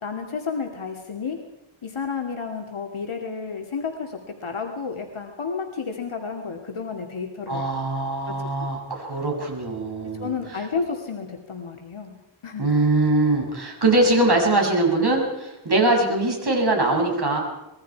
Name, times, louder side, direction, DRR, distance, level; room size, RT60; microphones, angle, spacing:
voice 1, 0.0-1.4 1.8-7.7 8.3-8.4 10.2-12.1 12.4-12.6, left 5 dB, 75° left, 2 dB, 2.6 m, -31 dB
voice 2, 7.5-10.3 12.6-17.4, right 2 dB, 50° right, 0 dB, 7.1 m, -22 dB
26.0 x 21.5 x 4.7 m, 0.95 s
wide cardioid pair, 95°, 50 cm